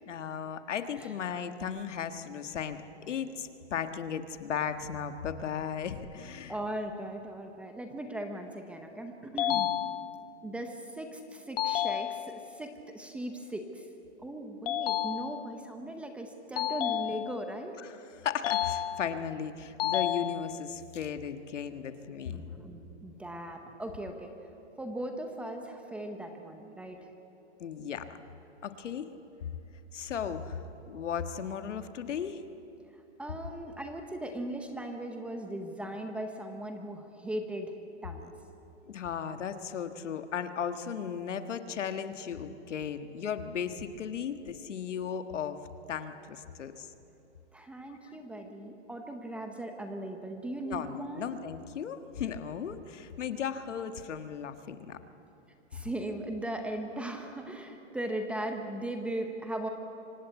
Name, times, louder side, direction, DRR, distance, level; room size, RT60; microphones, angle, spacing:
voice 1, 0.1-6.6 9.5-9.6 17.8-22.4 27.6-28.1 28.6-29.1 29.9-32.4 38.9-45.6 45.9-46.9 50.6-55.0, left 7 dB, 80° left, 8 dB, 1.6 m, -36 dB
voice 2, 6.5-9.7 10.4-13.9 14.2-17.8 22.3-24.3 24.8-27.0 33.2-37.7 38.0-38.4 47.5-51.3 55.7-59.7, right 1 dB, 5° right, 4 dB, 0.7 m, -38 dB
sound 1, 9.4-10.4 11.6-12.6 14.7-15.7 16.6-17.6 18.4-19.3 19.8-20.8, left 11 dB, 55° left, 0.5 m, -32 dB
25.0 x 17.0 x 8.3 m, 2.8 s
hypercardioid pair, 160°, 36 cm